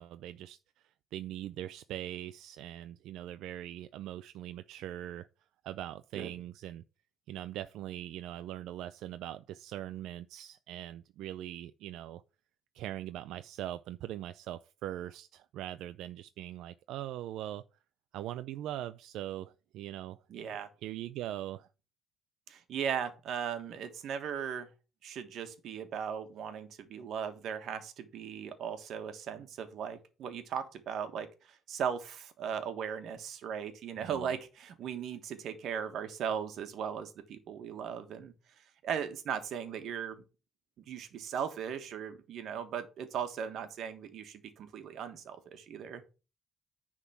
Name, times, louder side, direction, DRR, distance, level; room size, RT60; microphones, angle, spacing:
voice 1, 0.0-5.3 5.6-6.8 7.3-12.2 12.7-17.6 18.1-20.2 20.8-21.7 34.0-34.3, right 12 dB, 85° right, 0.4 m, -41 dB
voice 2, 20.3-20.7 22.5-24.7 25.0-38.3 38.8-40.2 40.9-46.0, right 8 dB, 60° right, 1.3 m, -38 dB
9.9 x 3.7 x 5.7 m
cardioid pair, 165°, 0 cm